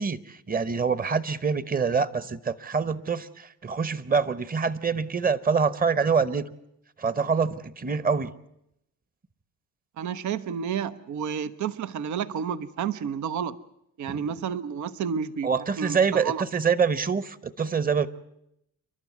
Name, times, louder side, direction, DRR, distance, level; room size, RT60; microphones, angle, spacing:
voice 1, 0.0-6.5 7.0-8.3 14.1-14.2 15.4-18.1, right 5 dB, 30° right, 17 dB, 1.1 m, -25 dB
voice 2, 10.0-13.6 14.0-15.5 15.8-16.4, right 7 dB, 70° right, 14 dB, 0.9 m, -30 dB
28.5 x 12.0 x 9.4 m, 0.79 s
cardioid pair, 90°, 30 cm